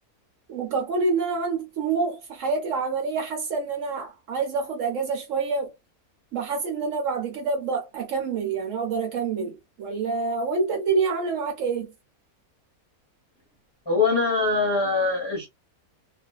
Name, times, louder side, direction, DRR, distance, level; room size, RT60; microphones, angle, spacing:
voice 1, 0.5-5.7 6.3-11.9, right 4 dB, 65° right, 0.9 m, -27 dB
voice 2, 13.9-15.5, left 3 dB, 25° left, 0.6 m, -23 dB
2.4 x 2.2 x 2.3 m
omnidirectional pair, 1.6 m